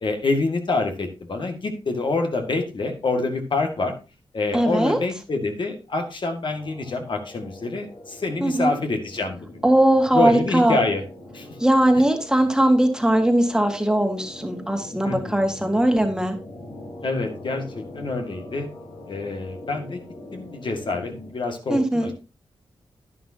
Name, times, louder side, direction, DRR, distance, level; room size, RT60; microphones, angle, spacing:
voice 1, 0.0-3.9 4.3-9.4 10.1-11.0 11.3-11.5 11.9-12.0 15.0-15.4 17.0-18.7 19.1-20.0 20.3-22.1, left 3 dB, 55° left, 4 dB, 2.0 m, -26 dB
voice 2, 4.5-5.0 8.4-8.7 9.6-10.8 11.6-16.4 21.7-22.1, right 1 dB, 5° right, 4 dB, 1.8 m, -20 dB
sound 1, 6.5-21.3, left 1 dB, 80° left, 3.7 m, -42 dB
10.5 x 10.0 x 2.8 m, 0.31 s
cardioid pair, 70°, 10 cm